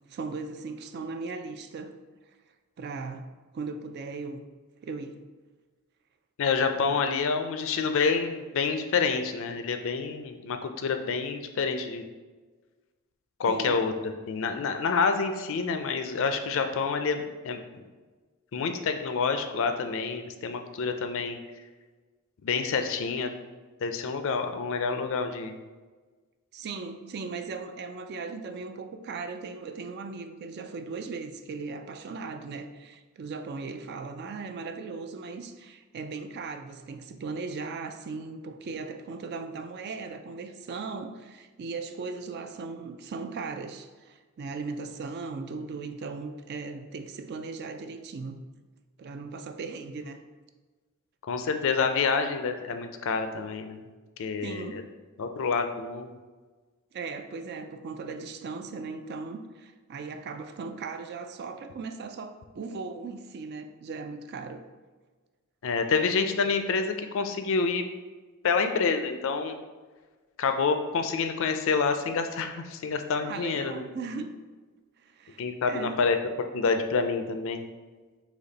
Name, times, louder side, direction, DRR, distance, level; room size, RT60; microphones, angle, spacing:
voice 1, 0.1-1.9 2.8-4.4 4.8-5.2 6.8-7.0 13.5-13.8 26.5-48.4 49.0-50.2 54.4-54.9 56.9-64.6 73.2-74.3 75.0-76.1, right 4 dB, 45° right, 8 dB, 0.3 m, -38 dB
voice 2, 6.4-12.0 13.4-13.9 14.3-17.8 18.5-21.4 22.4-23.3 23.8-25.5 51.3-53.8 54.2-54.8 55.2-56.1 65.6-67.8 68.4-69.6 70.4-73.8 75.4-76.2 76.5-77.6, left 5 dB, 60° left, 7 dB, 0.4 m, -28 dB
4.2 x 2.9 x 4.0 m, 1.3 s
head